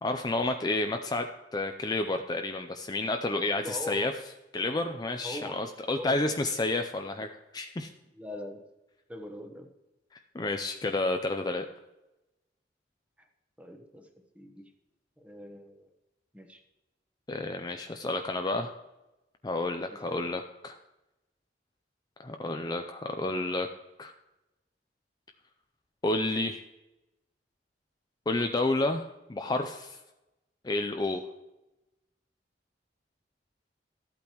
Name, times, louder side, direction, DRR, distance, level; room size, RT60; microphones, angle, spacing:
voice 1, 0.0-4.1 4.5-7.3 7.5-7.9 10.3-11.7 17.3-18.7 19.4-20.8 22.2-23.7 24.0-24.1 26.0-26.6 28.3-30.0 30.6-31.3, left 2 dB, 25° left, 5 dB, 0.5 m, -30 dB
voice 2, 3.6-4.1 5.2-5.6 6.0-6.4 8.2-8.7 9.1-9.7 13.2-13.3 13.6-14.1 14.3-14.7 15.2-15.9 16.3-16.6 19.9-20.3, left 1 dB, 10° right, 5 dB, 1.1 m, -42 dB
13.5 x 8.5 x 3.0 m, 0.99 s
head